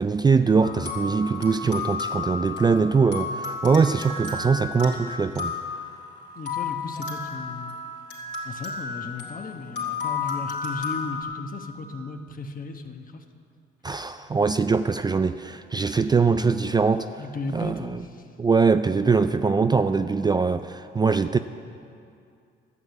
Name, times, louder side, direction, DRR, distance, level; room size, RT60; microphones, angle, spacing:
voice 1, 0.0-5.5 13.8-17.1 17.5-18.0 18.4-21.4, right 5 dB, 20° right, 10 dB, 0.3 m, -22 dB
sound 1, 0.6-11.2, left 5 dB, 65° left, 2.8 m, -33 dB
voice 2, 6.4-7.8 8.4-13.2 17.2-18.2, left 3 dB, 45° left, 5 dB, 1.1 m, -36 dB
12.5 x 7.5 x 8.2 m, 2.4 s
cardioid pair, 90°, 20 cm